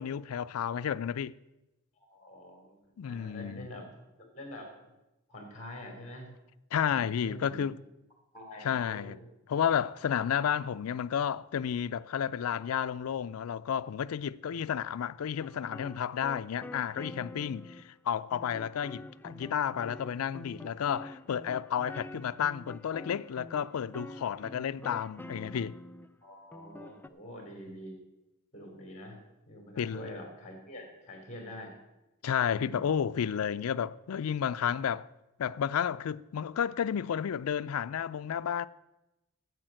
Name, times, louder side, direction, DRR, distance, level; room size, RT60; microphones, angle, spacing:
voice 1, 0.0-1.3 3.0-3.7 6.7-7.8 8.6-9.2 9.5-25.8 29.8-30.1 32.2-35.1 35.4-38.7, left 8 dB, 90° left, 0.4 m, -32 dB
voice 2, 2.1-2.8 3.0-3.9 4.2-4.9 5.3-6.3 6.9-7.6 8.3-9.2 14.5-14.6 24.5-24.6 26.2-28.0 28.5-29.2 29.5-31.8, left 1 dB, 35° left, 3.4 m, -46 dB
sound 1, 15.4-17.9 18.3-26.1 26.5-27.1, left 2 dB, 10° left, 0.4 m, -47 dB
9.1 x 8.1 x 7.6 m
head